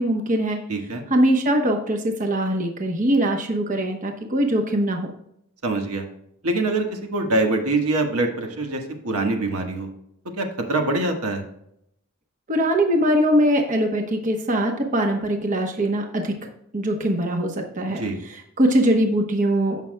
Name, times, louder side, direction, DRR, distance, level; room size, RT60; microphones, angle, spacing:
voice 1, 0.0-0.6 1.1-5.1 12.5-16.4 16.7-19.8, right 1 dB, 35° right, 3 dB, 1.0 m, -22 dB
voice 2, 0.7-1.0 5.6-6.0 6.4-9.9 10.4-11.4 18.0-18.2, right 2 dB, 85° right, 3 dB, 1.5 m, -24 dB
15.5 x 5.8 x 2.2 m, 0.76 s
head